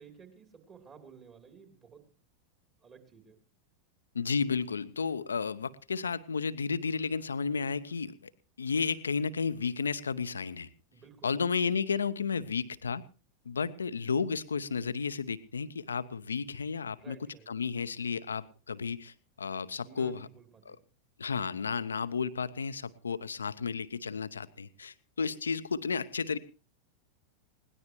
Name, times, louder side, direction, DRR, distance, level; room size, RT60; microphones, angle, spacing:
voice 1, 0.0-2.1 2.8-3.4 10.9-11.4 17.0-17.5 19.8-20.8, right 6 dB, 30° right, 5 dB, 3.2 m, -54 dB
voice 2, 4.1-8.2 8.6-10.7 11.2-13.0 13.5-17.2 17.5-20.3 20.7-20.8 21.2-26.4, left 5 dB, 70° left, 14 dB, 0.8 m, -32 dB
21.0 x 18.0 x 3.0 m, 0.34 s
figure-of-eight pair, 90°, 0 cm